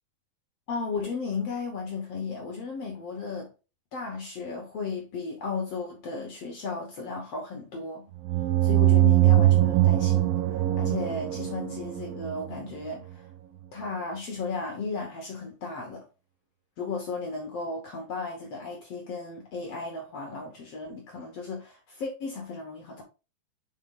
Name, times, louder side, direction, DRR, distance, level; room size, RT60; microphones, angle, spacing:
voice 1, 0.7-3.5 3.9-8.0 8.6-10.4 10.8-13.3 13.7-16.0 16.8-23.0, left 4 dB, 65° left, 1.6 m, -35 dB
sound 1, 8.2-12.8, right 14 dB, 85° right, 2.5 m, -22 dB
5.5 x 4.9 x 3.7 m
omnidirectional pair, 4.3 m